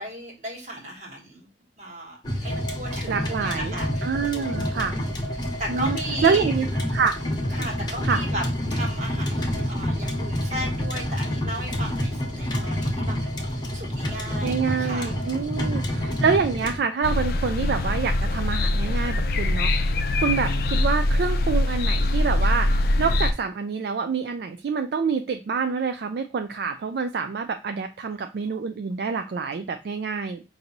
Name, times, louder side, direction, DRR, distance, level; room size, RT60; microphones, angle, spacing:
voice 1, 0.0-1.5 1.8-4.9 5.4-6.5 7.5-8.4 8.7-13.2 13.5-16.0, right 1 dB, 40° right, 0 dB, 1.4 m, -36 dB
sound 1, 2.2-16.8, equal, 25° left, 1.0 m, -28 dB
voice 2, 3.1-3.7 4.0-4.9 5.7-6.7 6.9-7.2 8.0-8.2 14.4-22.7 23.0-30.4, right 5 dB, 60° right, 7 dB, 0.3 m, -26 dB
sound 2, 17.0-23.3, left 1 dB, 55° left, 0.4 m, -23 dB
5.1 x 2.6 x 2.9 m, 0.31 s
head